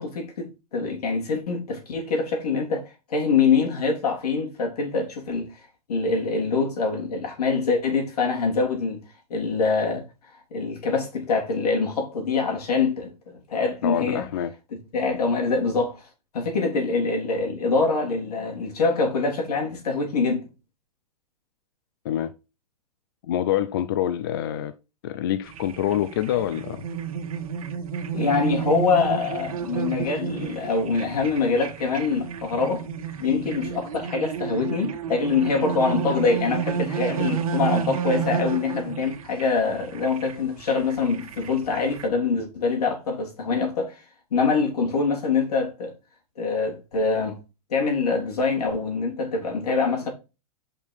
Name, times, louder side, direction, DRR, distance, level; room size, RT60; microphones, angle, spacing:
voice 1, 0.0-2.8 3.1-5.5 5.9-9.0 9.3-10.0 10.5-14.3 14.9-16.0 16.3-20.5 28.1-32.8 33.2-44.0 44.3-45.9 46.4-47.4 47.7-50.1, left 4 dB, 80° left, 3.5 m, -24 dB
voice 2, 13.8-14.6 22.0-22.3 23.2-24.7 25.0-26.8, left 11 dB, 35° left, 0.4 m, -26 dB
sound 1, 25.4-42.1, right 7 dB, 65° right, 1.5 m, -31 dB
6.5 x 5.4 x 4.6 m
supercardioid pair, 175°, 19 cm